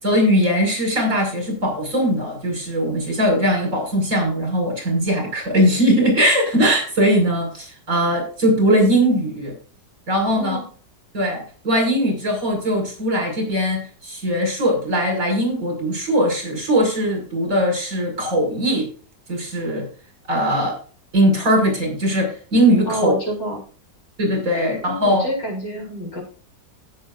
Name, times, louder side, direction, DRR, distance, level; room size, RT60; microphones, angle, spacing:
voice 1, 0.0-9.5 10.1-10.6 11.1-18.9 19.3-19.9 20.3-20.7 21.1-23.1 24.2-25.3, equal, 50° right, 2 dB, 6.3 m, -20 dB
voice 2, 10.3-10.6 22.9-23.6 24.5-26.2, equal, 80° left, 0 dB, 6.3 m, -28 dB
17.0 x 7.5 x 2.6 m, 0.40 s
omnidirectional pair, 1.9 m